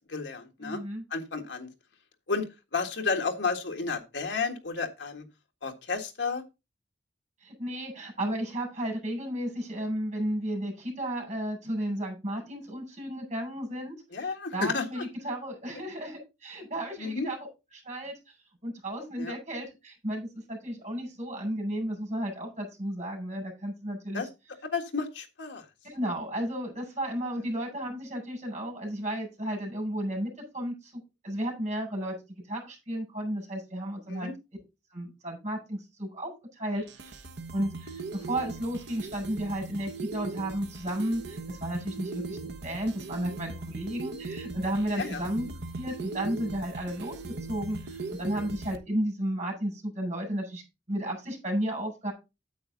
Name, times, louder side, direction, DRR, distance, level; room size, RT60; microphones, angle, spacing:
voice 1, 0.1-0.8 1.1-1.7 2.3-2.5 2.7-5.3 5.6-6.4 14.1-15.0 15.7-15.8 17.0-17.3 19.2-19.4 24.1-24.3 24.6-25.7 34.1-34.4 45.0-45.2, left 4 dB, 85° left, 5 dB, 1.8 m, -32 dB
voice 2, 0.6-1.0 7.4-14.0 14.2-17.4 17.8-18.1 18.6-24.3 25.8-30.9 31.2-32.1 32.5-34.3 34.9-37.2 37.5-47.1 47.5-50.6 50.9-52.1, right 1 dB, 40° right, 1 dB, 6.3 m, -33 dB
sound 1, 36.8-48.8, right 3 dB, 70° right, 1.1 m, -39 dB
9.3 x 8.2 x 4.0 m, 0.26 s
head